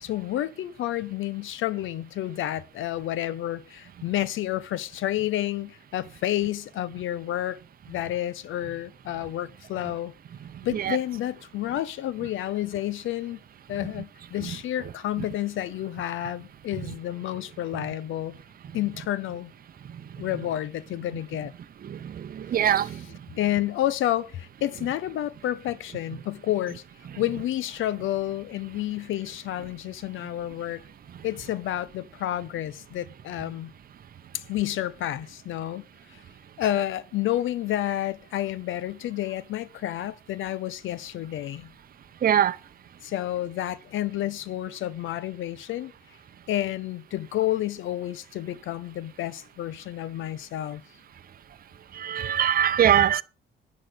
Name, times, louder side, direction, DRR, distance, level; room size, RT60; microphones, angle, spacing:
voice 1, 0.0-7.6 7.9-10.1 10.6-13.4 13.7-18.4 18.7-19.5 20.2-21.5 23.3-26.8 27.2-30.8 31.2-33.7 34.3-35.8 36.1-36.2 36.6-41.7 43.0-45.9 46.5-50.8, left 13 dB, 80° left, 1.0 m, -30 dB
voice 2, 21.9-23.1 42.2-42.6 51.9-53.2, right 10 dB, 45° right, 0.7 m, -22 dB
10.0 x 6.4 x 7.9 m
cardioid pair, 90°, 20 cm